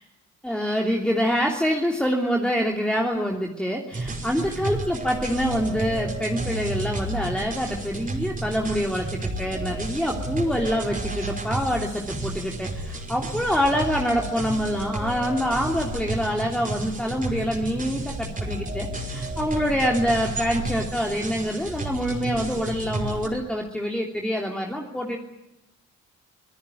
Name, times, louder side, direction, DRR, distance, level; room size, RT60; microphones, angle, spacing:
voice 1, 0.4-25.2, equal, 5° left, 0 dB, 3.1 m, -26 dB
sound 1, 3.9-23.3, right 2 dB, 25° right, 5.5 m, -32 dB
26.0 x 17.0 x 9.3 m, 0.94 s
cardioid pair, 90°, 30 cm